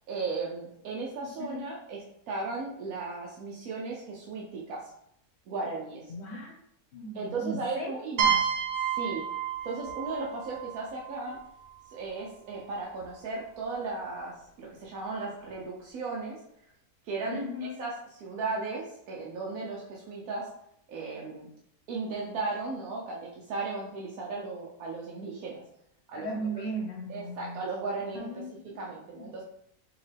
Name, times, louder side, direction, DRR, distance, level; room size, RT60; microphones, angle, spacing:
voice 1, 0.1-4.9 5.5-6.1 7.1-8.4 8.9-9.3 9.6-11.4 11.9-16.4 17.0-17.9 18.2-20.5 20.9-21.5 21.9-25.6 26.1-26.6 27.1-28.4 28.7-29.4, right 3 dB, 70° right, -3 dB, 1.1 m, -36 dB
voice 2, 1.2-1.7 6.1-6.5 6.9-8.4 17.3-17.9 26.1-27.6 28.1-28.9 29.2-29.4, equal, 50° left, 0 dB, 1.0 m, -37 dB
sound 1, 8.2-11.8, right 8 dB, 85° right, 1.3 m, -30 dB
4.6 x 2.9 x 3.4 m, 0.76 s
omnidirectional pair, 1.6 m